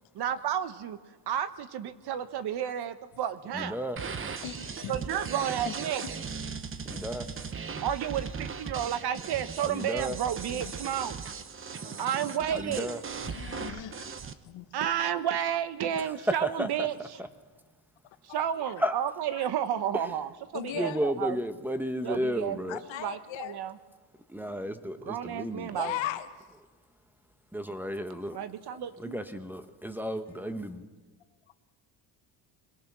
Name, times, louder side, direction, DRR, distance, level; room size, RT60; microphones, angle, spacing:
voice 1, 0.1-1.0 1.3-3.8 4.9-6.0 7.8-11.2 12.0-13.0 14.7-17.2 18.2-21.4 22.0-22.6 23.0-23.7 25.0-26.0 28.3-29.2, right 9 dB, 55° right, 12 dB, 1.1 m, -31 dB
voice 2, 3.5-4.0 6.8-7.2 9.6-10.2 12.5-13.0 16.4-16.9 18.8-18.9 20.8-22.8 24.3-25.8 27.5-28.4 29.0-30.9, equal, 5° right, 9 dB, 1.1 m, -33 dB
sound 1, 4.0-14.3, right 5 dB, 25° right, 1.0 m, -38 dB
voice 3, 4.4-5.1 5.6-6.0 6.8-7.4 10.5-11.0 11.8-12.7 13.2-14.7 18.4-18.8 19.3-19.5 20.5-21.0 22.0-22.2 22.7-23.6 25.7-26.3 27.8-29.0, left 12 dB, 70° left, 8 dB, 1.5 m, -40 dB
22.5 x 20.0 x 6.1 m, 1.4 s
cardioid pair, 120°, 47 cm